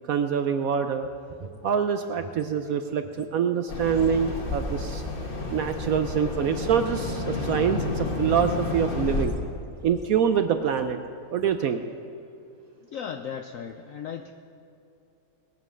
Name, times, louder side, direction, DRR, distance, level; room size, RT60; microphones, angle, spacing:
voice 1, 0.1-1.1 1.6-5.0 5.5-9.3 9.8-11.0 11.3-11.8, right 7 dB, 70° right, 8 dB, 0.8 m, -25 dB
sound 1, 1.0-3.3 3.6-10.3 10.6-11.0 11.3-11.6, right 4 dB, 40° right, 0.6 m, -50 dB
sound 2, 3.7-9.3, left 2 dB, 35° left, 1.4 m, -31 dB
voice 2, 12.8-14.3, left 7 dB, 75° left, 7 dB, 0.7 m, -36 dB
19.0 x 7.7 x 6.2 m, 2.7 s
omnidirectional pair, 1.9 m